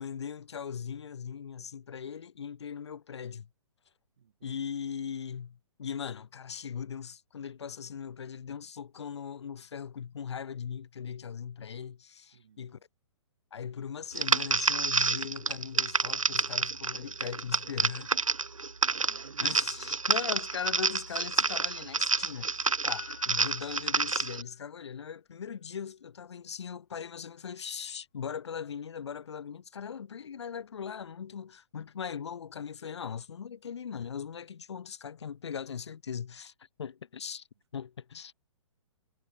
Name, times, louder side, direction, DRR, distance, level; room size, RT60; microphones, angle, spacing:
voice 1, 0.0-3.5 4.4-12.8 13.5-18.2 19.4-36.5 36.8-37.5 37.7-38.3, left 7 dB, 55° left, 5.1 m, -39 dB
voice 2, 4.2-4.6 12.3-12.8 18.8-20.0, right 8 dB, 55° right, 6.9 m, -55 dB
sound 1, 14.1-24.4, right 4 dB, 80° right, 0.6 m, -29 dB
Piano, 22.9-24.7 25.0-25.1, left 20 dB, 30° left, 2.1 m, -50 dB
figure-of-eight pair, 120°, 17 cm